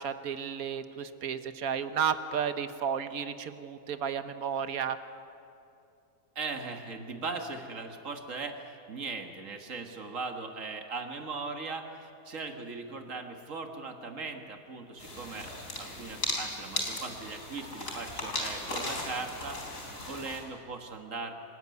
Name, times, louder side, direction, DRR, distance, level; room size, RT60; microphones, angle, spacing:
voice 1, 0.0-5.0, right 7 dB, 85° right, 10 dB, 1.5 m, -32 dB
voice 2, 6.4-15.5 15.8-19.6 20.0-21.3, right 4 dB, 65° right, 5 dB, 2.1 m, -39 dB
sound 1, 15.0-20.4, left 1 dB, 70° left, 4.4 m, -37 dB
27.0 x 13.5 x 9.6 m, 2.7 s
omnidirectional pair, 1.5 m